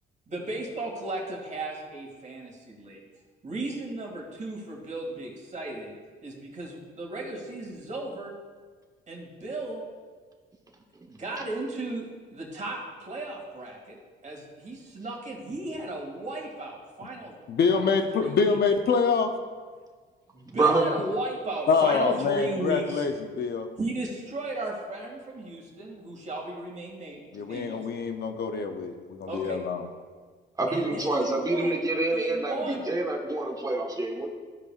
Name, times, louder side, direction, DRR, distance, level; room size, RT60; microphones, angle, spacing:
voice 1, 0.3-3.0 3.4-5.9 6.2-8.3 9.1-9.8 11.1-14.0 14.2-17.3 17.7-17.9 18.1-18.6 20.3-23.1 23.8-27.8 29.3-29.6 30.7-31.8 32.1-33.0, right 2 dB, 35° right, -1 dB, 2.3 m, -35 dB
voice 2, 17.5-19.3 21.7-23.7 27.3-29.9, left 5 dB, 55° left, 5 dB, 0.7 m, -25 dB
voice 3, 20.4-20.9 30.6-34.3, right 2 dB, 20° right, 0 dB, 1.4 m, -26 dB
14.5 x 5.0 x 2.5 m, 1.5 s
cardioid pair, 90°, 20 cm